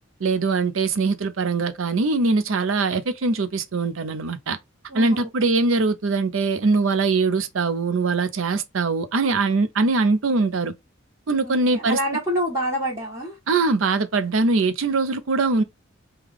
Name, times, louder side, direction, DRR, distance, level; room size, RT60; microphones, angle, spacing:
voice 1, 0.2-4.6 4.9-10.7 11.3-12.0 13.5-15.6, right 3 dB, 70° right, 0.6 m, -22 dB
voice 2, 4.9-5.5 11.4-13.4, equal, 20° right, 1.4 m, -27 dB
3.4 x 2.3 x 3.4 m
head